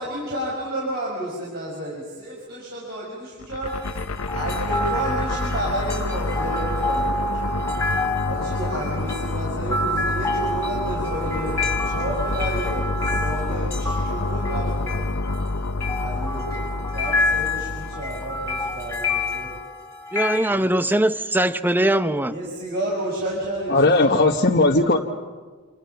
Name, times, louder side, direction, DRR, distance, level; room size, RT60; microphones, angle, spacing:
voice 1, 0.0-3.7 4.3-7.5 8.3-15.1 16.0-16.7 16.9-19.5 20.5-20.7 22.3-24.2, right 1 dB, 45° right, -4 dB, 6.0 m, -31 dB
sound 1, 3.4-19.6, left 2 dB, 80° left, 1.0 m, -28 dB
sound 2, 3.7-20.4, left 2 dB, 10° left, 3.2 m, -28 dB
voice 2, 20.1-22.3, right 1 dB, 10° right, 11 dB, 0.7 m, -21 dB
voice 3, 23.7-25.0, left 2 dB, 50° left, 0 dB, 1.3 m, -17 dB
28.0 x 27.5 x 5.8 m, 1.4 s
head